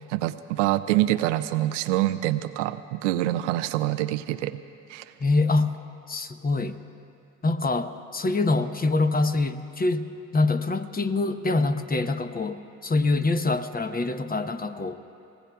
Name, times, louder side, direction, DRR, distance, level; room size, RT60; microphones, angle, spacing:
voice 1, 0.1-4.6 4.9-5.0, right 15 dB, 90° right, 12 dB, 0.5 m, -25 dB
voice 2, 5.2-5.7 6.1-6.8 7.4-10.1 10.3-14.9, left 3 dB, 25° left, 9 dB, 0.9 m, -25 dB
26.0 x 19.0 x 2.3 m, 2.8 s
hypercardioid pair, 55°, 35 cm